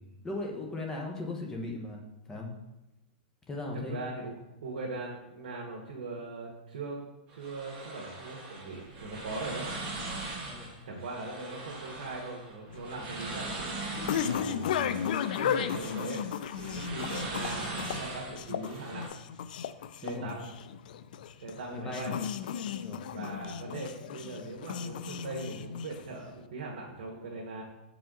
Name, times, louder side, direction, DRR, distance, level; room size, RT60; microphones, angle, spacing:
voice 1, 0.2-2.0 2.3-2.5 3.5-4.0 10.5-10.8 14.0-14.3 20.0-20.4 21.7-22.1 22.8-23.1, left 2 dB, 10° left, 0 dB, 1.1 m, -38 dB
voice 2, 3.7-7.0 7.3-9.7 10.8-13.5 14.2-15.1 15.4-16.2 16.5-19.1 20.0-20.5 21.4-22.2 23.1-27.6, right 3 dB, 75° right, -3 dB, 1.6 m, -40 dB
sound 1, 7.3-19.1, right 2 dB, 25° right, 1.8 m, -41 dB
sound 2, 12.7-26.3, left 8 dB, 65° left, 0.4 m, -35 dB
7.0 x 4.9 x 3.8 m, 0.93 s
hypercardioid pair, 155°, 5 cm